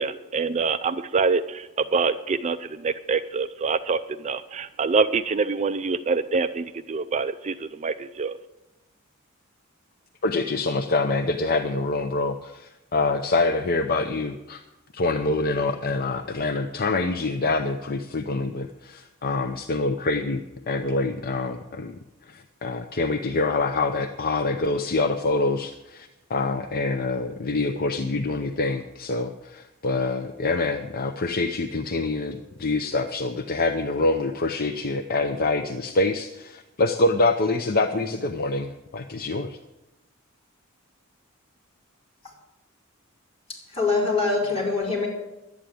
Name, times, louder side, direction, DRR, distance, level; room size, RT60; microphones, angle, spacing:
voice 1, 0.0-8.4, right 4 dB, 35° right, 11 dB, 0.4 m, -25 dB
voice 2, 10.2-14.6 14.9-22.0 22.3-39.6, left 3 dB, 45° left, 7 dB, 0.7 m, -26 dB
voice 3, 43.5-45.1, left 3 dB, 30° left, -4 dB, 4.7 m, -24 dB
11.5 x 9.3 x 8.7 m, 0.99 s
head